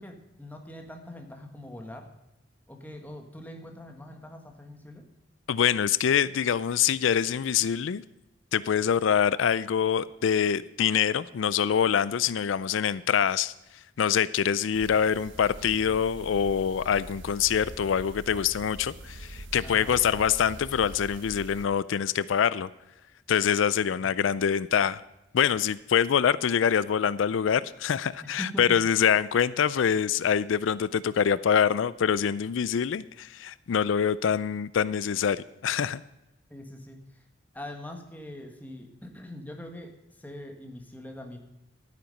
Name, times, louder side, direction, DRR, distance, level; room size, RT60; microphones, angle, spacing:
voice 1, 0.0-2.1 2.7-5.1 19.6-19.9 28.4-28.8 36.5-37.2 37.5-41.4, left 1 dB, 10° left, 3 dB, 1.5 m, -42 dB
voice 2, 5.5-8.0 8.5-13.5 14.0-22.7 23.3-25.0 25.3-36.0, left 8 dB, 85° left, 18 dB, 0.4 m, -25 dB
sound 1, 14.7-21.7, right 1 dB, 80° right, 0.9 m, -44 dB
12.0 x 9.5 x 5.3 m, 0.93 s
head